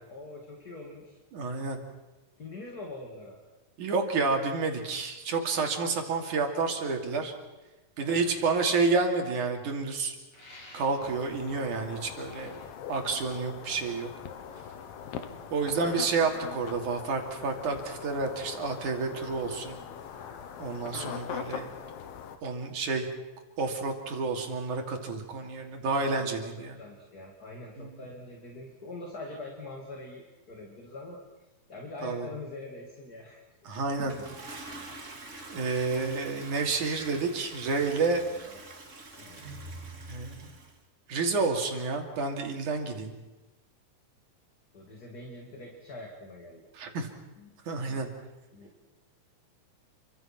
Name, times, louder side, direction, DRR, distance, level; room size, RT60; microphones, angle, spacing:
voice 1, 0.1-1.2 2.4-3.4 8.0-8.4 25.9-31.2 31.7-33.4 34.2-34.4 35.0-35.2 38.3-38.6 39.2-39.4 44.7-46.6 47.4-47.5 48.5-48.7, left 2 dB, 30° left, 1 dB, 2.7 m, -44 dB
voice 2, 1.3-1.8 3.8-7.3 8.0-10.2 10.7-12.5 12.9-14.1 15.5-19.8 20.6-21.7 22.4-23.1 23.6-26.8 27.8-27.9 32.0-32.3 33.7-34.2 34.4-34.9 35.5-38.2 40.1-40.5 41.1-43.1 46.7-47.1 47.7-48.1, right 4 dB, 60° right, 3 dB, 4.1 m, -30 dB
sound 1, 10.3-11.3 12.1-13.8, left 2 dB, 50° left, 8.2 m, -52 dB
sound 2, 11.0-22.4, left 8 dB, 85° left, 3.3 m, -42 dB
Toilet flush, 33.9-40.8, right 2 dB, 25° right, 2.2 m, -45 dB
29.0 x 24.5 x 6.0 m, 1.1 s
omnidirectional pair, 4.0 m